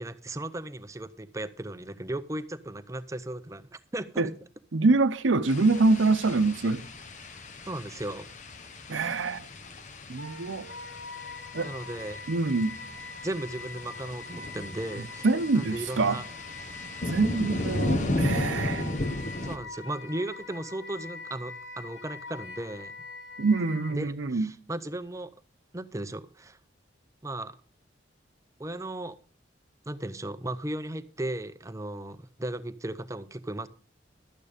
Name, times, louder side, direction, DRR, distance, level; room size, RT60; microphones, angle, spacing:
voice 1, 0.0-4.3 7.7-8.3 11.6-12.2 13.2-15.3 15.5-16.3 19.4-22.9 23.9-25.3 25.7-26.6 27.2-27.6 28.6-29.2 29.9-33.7, right 1 dB, 15° right, 0.6 m, -36 dB
voice 2, 4.7-6.8 8.9-9.5 10.1-10.6 11.5-11.7 12.3-12.8 15.2-16.2 17.1-19.1 23.4-24.5, right 3 dB, 90° right, 0.7 m, -25 dB
sound 1, 5.5-19.6, left 1 dB, 40° left, 1.0 m, -35 dB
Wind instrument woodwind instrument, 10.2-24.0, left 3 dB, 85° left, 2.7 m, -43 dB
12.0 x 8.9 x 5.0 m
head